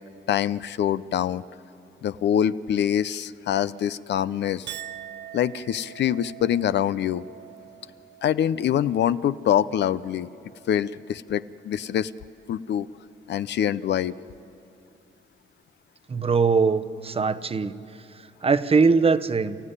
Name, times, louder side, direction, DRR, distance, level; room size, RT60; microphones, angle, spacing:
voice 1, 0.3-1.4 2.0-4.7 5.3-7.2 8.2-10.3 10.7-12.1 12.5-12.9 13.3-14.1, left 10 dB, 60° left, 15 dB, 0.6 m, -24 dB
Chink clink, 4.7-11.2 11.6-12.2, right 11 dB, 65° right, 1.0 m, -45 dB
voice 2, 16.1-17.7 18.4-19.6, right 4 dB, 30° right, 11 dB, 0.9 m, -21 dB
29.0 x 14.5 x 9.9 m, 2.6 s
cardioid pair, 90°, 20 cm